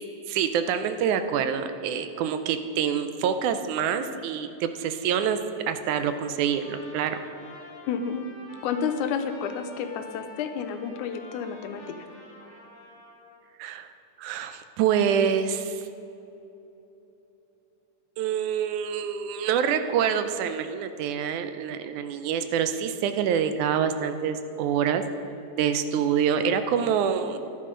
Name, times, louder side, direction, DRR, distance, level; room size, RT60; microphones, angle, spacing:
voice 1, 0.3-5.4 5.7-7.2 13.6-13.9 14.2-15.9 18.2-25.0 25.5-27.4, right 8 dB, 80° right, 9 dB, 2.1 m, -26 dB
Trumpet, 6.0-13.4, left 2 dB, 20° left, 2.5 m, -48 dB
voice 2, 7.9-8.3 8.6-12.1, left 6 dB, 80° left, 8 dB, 2.1 m, -30 dB
14.0 x 11.0 x 3.8 m, 2.9 s
omnidirectional pair, 3.5 m